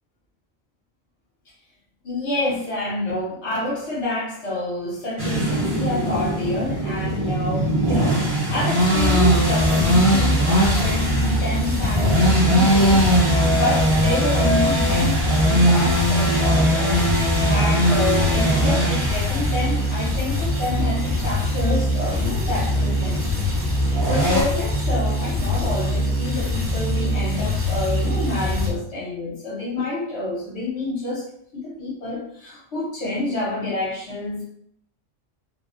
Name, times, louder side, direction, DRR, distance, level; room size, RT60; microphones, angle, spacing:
voice 1, 2.0-13.0 13.5-15.2 15.4-17.1 17.5-23.5 24.0-34.5, left 2 dB, 85° left, -6 dB, 1.2 m, -28 dB
sound 1, 5.2-24.4, equal, 55° right, 1.2 m, -21 dB
sound 2, 8.9-28.7, equal, 20° right, 0.4 m, -23 dB
3.4 x 2.2 x 2.4 m, 0.68 s
omnidirectional pair, 1.1 m